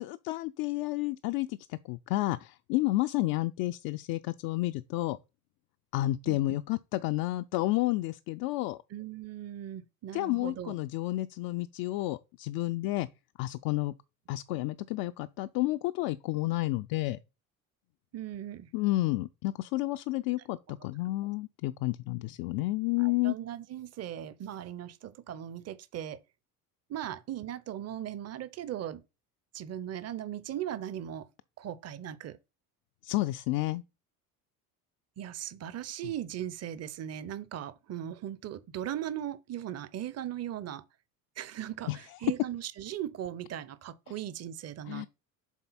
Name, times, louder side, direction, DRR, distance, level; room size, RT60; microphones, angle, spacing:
voice 1, 0.0-5.2 5.9-8.8 10.1-13.1 13.4-13.9 14.3-17.2 18.7-23.3 33.0-33.8 41.9-42.0 44.9-45.1, left 18 dB, 50° left, 0.5 m, -31 dB
voice 2, 8.9-10.7 14.5-14.6 18.1-18.7 23.0-26.2 26.9-29.0 29.5-31.3 31.6-32.4 35.2-40.8 41.4-45.1, right 11 dB, 35° right, 0.7 m, -38 dB
7.2 x 3.9 x 4.1 m
hypercardioid pair, 65°, 46 cm